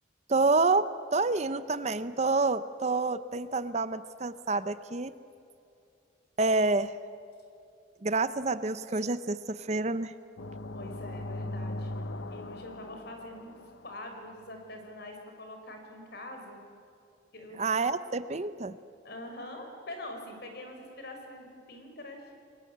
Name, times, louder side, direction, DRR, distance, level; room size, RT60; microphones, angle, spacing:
voice 1, 0.3-5.1 6.4-6.9 8.0-10.1 17.6-18.8, right 3 dB, 35° right, 13 dB, 0.7 m, -28 dB
sound 1, 10.4-14.2, left 1 dB, 80° left, 0.9 m, -39 dB
voice 2, 10.7-11.9 12.3-16.6 17.3-17.8 19.0-22.3, left 1 dB, 55° left, 4 dB, 5.1 m, -44 dB
29.5 x 21.0 x 8.6 m, 2.6 s
head